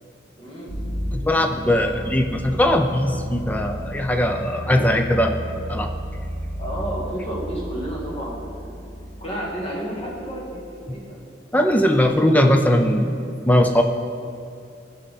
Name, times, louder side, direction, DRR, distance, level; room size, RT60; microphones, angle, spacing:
voice 1, 0.4-0.7 6.6-8.7 9.2-11.2, right 1 dB, 30° left, -5 dB, 2.1 m, -31 dB
sound 1, 0.7-10.3, equal, 65° left, 2.5 m, -33 dB
voice 2, 1.1-5.9 11.5-13.8, left 1 dB, 10° left, 4 dB, 0.5 m, -20 dB
14.5 x 5.6 x 4.3 m, 2.5 s
head